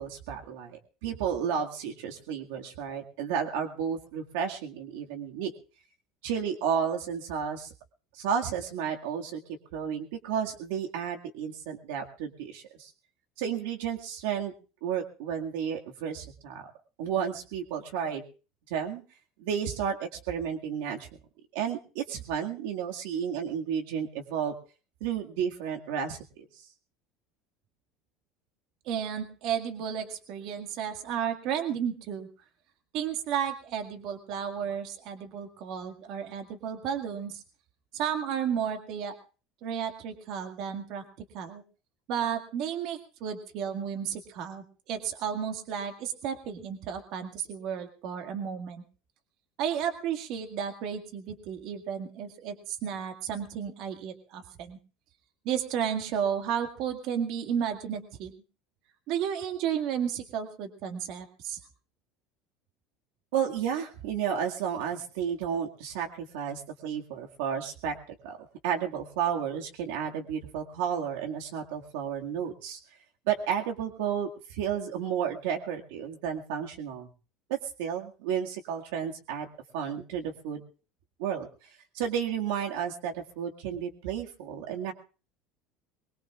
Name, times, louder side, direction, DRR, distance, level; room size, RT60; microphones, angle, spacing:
voice 1, 0.0-5.5 6.2-7.7 8.1-9.4 9.7-12.9 13.4-14.5 14.8-16.7 17.0-18.2 18.7-19.0 19.4-21.1 21.5-24.5 25.0-26.5 63.3-67.9 68.2-68.4 68.6-72.8 73.3-77.1 77.5-79.5 79.7-80.6 81.2-81.5 81.9-84.9, right 8 dB, 85° right, 2 dB, 2.0 m, -32 dB
voice 2, 28.9-32.3 32.9-37.4 37.9-39.1 39.6-41.6 42.1-48.8 49.6-54.8 55.5-58.3 59.1-61.6, right 8 dB, 60° right, 6 dB, 2.0 m, -33 dB
22.5 x 20.5 x 2.5 m, 0.36 s
cardioid pair, 145°, 0 cm